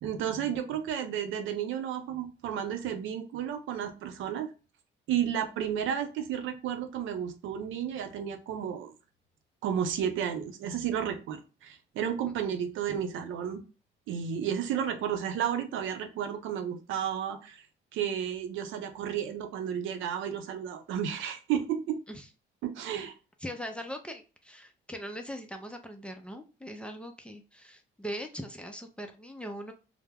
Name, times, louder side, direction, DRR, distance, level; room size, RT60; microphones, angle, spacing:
voice 1, 0.0-4.5 5.1-8.9 9.6-13.6 14.1-17.6 17.9-22.0 22.6-23.1, right 9 dB, 85° right, 7 dB, 0.5 m, -32 dB
voice 2, 23.4-29.7, equal, 5° left, 4 dB, 0.4 m, -40 dB
2.2 x 2.0 x 3.3 m, 0.33 s
cardioid pair, 90°, 20 cm